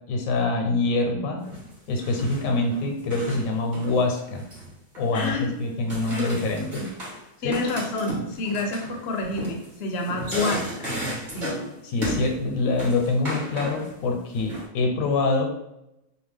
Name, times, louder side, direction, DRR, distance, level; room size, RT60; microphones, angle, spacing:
voice 1, 0.1-1.5 1.9-4.4 5.0-6.9 7.4-7.6 11.8-15.5, left 3 dB, 80° left, 2 dB, 1.0 m, -25 dB
sound 1, 1.5-1.7 2.0-3.5 3.7-4.7 4.9-5.5 5.9-7.2 7.5-11.7 12.0-12.4 12.8-13.9 14.3-14.7, equal, 40° right, 1.2 m, -34 dB
voice 2, 5.1-5.5 6.1-6.2 7.4-10.9 11.3-11.5, left 2 dB, 60° left, 2 dB, 0.7 m, -28 dB
2.8 x 2.2 x 3.3 m, 0.86 s
omnidirectional pair, 1.4 m